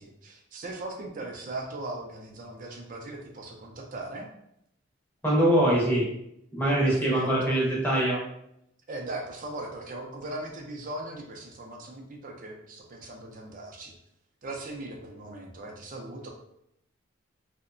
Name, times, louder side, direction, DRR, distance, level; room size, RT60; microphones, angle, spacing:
voice 1, 0.0-4.3 6.8-7.6 8.9-13.9 14.4-16.3, right 2 dB, 40° right, 1 dB, 0.4 m, -39 dB
voice 2, 5.2-6.1 6.5-8.2, right 1 dB, 10° left, -5 dB, 0.7 m, -23 dB
2.8 x 2.1 x 2.5 m, 0.76 s
head